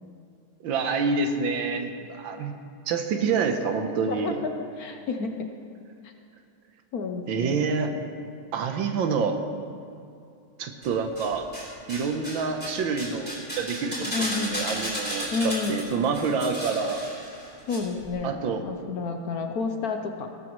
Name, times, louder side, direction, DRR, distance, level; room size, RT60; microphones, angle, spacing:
voice 1, 0.6-2.5 2.9-4.4 7.3-7.9 8.5-9.4 10.6-11.5 11.9-17.0 18.2-18.6, right 5 dB, 80° right, 6 dB, 1.7 m, -27 dB
voice 2, 4.1-5.5 6.9-7.7 14.1-14.7 15.3-15.8 17.7-20.3, left 4 dB, 60° left, 5 dB, 1.1 m, -30 dB
sound 1, 10.8-11.6 11.9-17.8 18.0-18.1, equal, 5° left, 3.5 m, -34 dB
17.5 x 13.0 x 3.1 m, 2.4 s
omnidirectional pair, 2.1 m